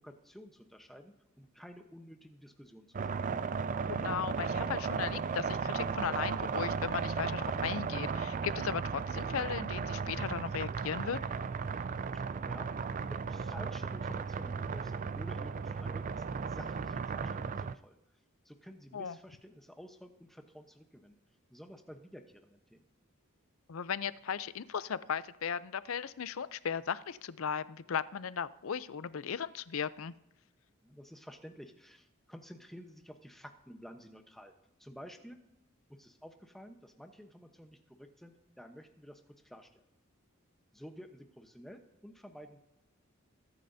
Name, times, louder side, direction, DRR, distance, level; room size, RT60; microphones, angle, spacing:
voice 1, 0.0-3.3 12.1-12.7 13.1-18.0 18.4-21.2 21.5-22.9 30.8-34.5 34.8-35.4 35.9-39.8 40.7-42.6, equal, ahead, 5 dB, 0.9 m, -51 dB
sound 1, 2.9-17.7, right 5 dB, 40° right, 0.3 m, -35 dB
voice 2, 3.9-11.2 18.9-19.2 23.7-30.1, left 7 dB, 80° left, 16 dB, 0.5 m, -36 dB
22.0 x 9.9 x 2.7 m, 0.92 s
head